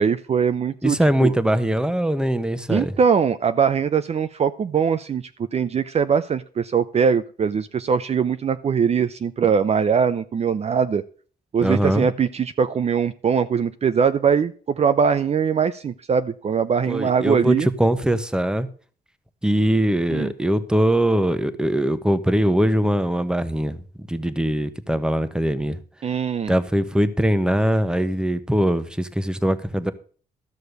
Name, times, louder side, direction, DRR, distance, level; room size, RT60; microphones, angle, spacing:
voice 1, 0.0-1.3 2.7-5.2 5.5-11.0 11.5-17.7 20.1-20.3 26.0-26.5, right 6 dB, 40° right, 0.6 m, -21 dB
voice 2, 0.8-2.9 11.6-12.1 16.9-18.7 19.4-23.8 24.1-25.8 26.5-29.9, right 1 dB, 5° right, 1.1 m, -21 dB
13.0 x 6.5 x 6.6 m
cardioid pair, 95°, 16 cm